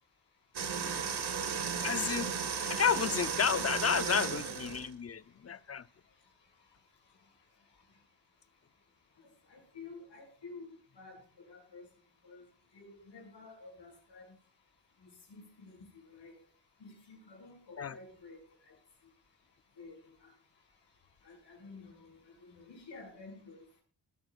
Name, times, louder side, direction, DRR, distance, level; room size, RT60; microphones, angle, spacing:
sound 1, 0.5-4.9, right 6 dB, 65° right, 1.5 m, -35 dB
voice 1, 1.8-2.3 2.7-5.9 17.8-18.0, left 7 dB, 35° left, 0.6 m, -31 dB
voice 2, 9.5-10.7 11.0-11.2 11.5-11.9 12.2-12.4 12.7-14.3 15.0-16.3 16.8-18.4 18.7-18.8 19.8-20.3 21.2-23.6, left 3 dB, 85° left, 6.3 m, -51 dB
20.0 x 8.9 x 2.4 m
cardioid pair, 70°, 42 cm